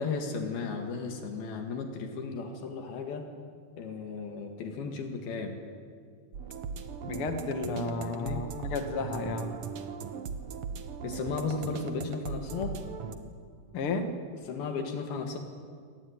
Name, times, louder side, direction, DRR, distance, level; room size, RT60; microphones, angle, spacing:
voice 1, 0.0-3.3 3.8-5.6 7.9-8.5 11.0-12.8 14.5-15.4, left 4 dB, 75° left, 4 dB, 3.8 m, -35 dB
sound 1, 6.3-13.1, right 6 dB, 70° right, 1.3 m, -39 dB
voice 2, 7.1-9.6 13.7-14.1, left 3 dB, 50° left, 6 dB, 1.7 m, -32 dB
25.0 x 19.0 x 9.6 m, 2.1 s
omnidirectional pair, 4.4 m